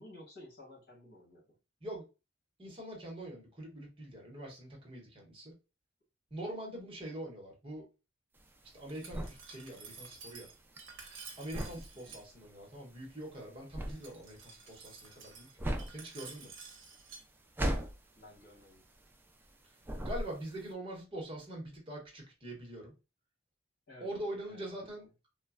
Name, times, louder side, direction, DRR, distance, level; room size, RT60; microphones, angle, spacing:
voice 1, 0.0-1.4 12.1-12.2 18.2-18.8 23.9-24.1 24.4-24.9, left 1 dB, 60° left, 1.6 m, -53 dB
voice 2, 2.6-5.5 6.3-7.9 8.7-10.5 11.4-15.5 15.9-16.5 20.0-22.9 24.0-25.1, right 1 dB, 30° right, 1.0 m, -43 dB
sound 1, 8.4-19.5 19.8-20.7, equal, 10° right, 0.4 m, -39 dB
Glass, 8.9-12.2 13.9-17.2, right 5 dB, 70° right, 0.8 m, -51 dB
3.1 x 2.2 x 2.3 m
head